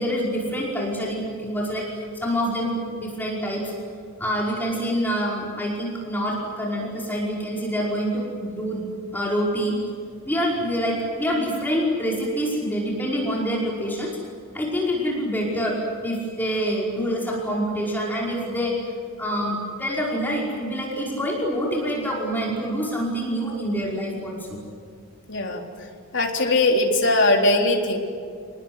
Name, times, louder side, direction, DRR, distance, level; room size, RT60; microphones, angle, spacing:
voice 1, 0.0-3.7 4.2-8.9 9.1-9.8 10.3-14.2 14.5-18.7 19.2-24.6, equal, 10° left, -3 dB, 5.2 m, -26 dB
voice 2, 25.3-25.6 26.1-28.0, left 2 dB, 55° left, 1 dB, 3.9 m, -20 dB
28.0 x 19.5 x 9.7 m, 2.2 s
head